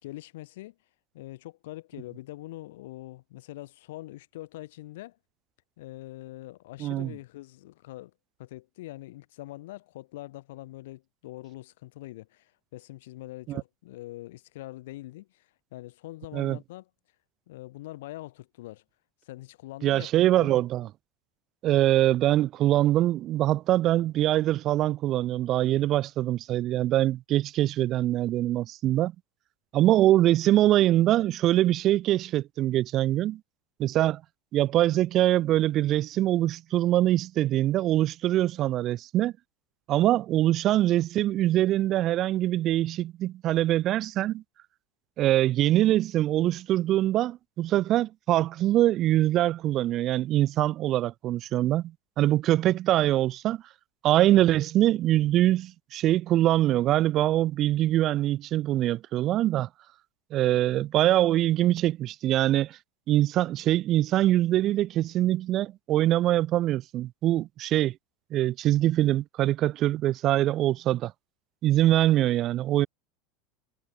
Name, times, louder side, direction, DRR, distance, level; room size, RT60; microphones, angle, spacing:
voice 1, 0.0-0.7 1.1-5.2 5.8-8.1 8.4-16.9 17.5-18.8 19.2-20.6, left 17 dB, 65° left, 4.9 m, -43 dB
voice 2, 6.8-7.1 13.5-13.6 16.3-16.6 19.8-20.9 21.6-29.1 29.7-33.4 33.8-34.2 34.5-39.3 39.9-44.4 45.2-53.6 54.0-59.7 60.3-62.8 63.1-67.9 68.3-71.1 71.6-72.9, right 14 dB, 40° right, 0.4 m, -23 dB
figure-of-eight pair, 80°, 0 cm